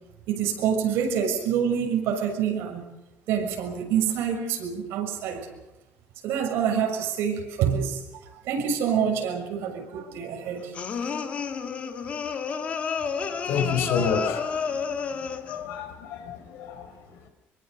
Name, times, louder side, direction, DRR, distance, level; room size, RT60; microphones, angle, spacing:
voice 1, 0.3-2.8 3.3-5.5 6.2-8.0 8.4-10.7, right 8 dB, 70° right, 3 dB, 6.7 m, -26 dB
sound 1, 10.7-15.6, left 6 dB, 30° left, 1.8 m, -30 dB
voice 2, 13.4-14.8 15.2-17.3, left 6 dB, 80° left, 9 dB, 4.5 m, -30 dB
26.0 x 23.5 x 6.9 m, 0.97 s
cardioid pair, 180°, 4 cm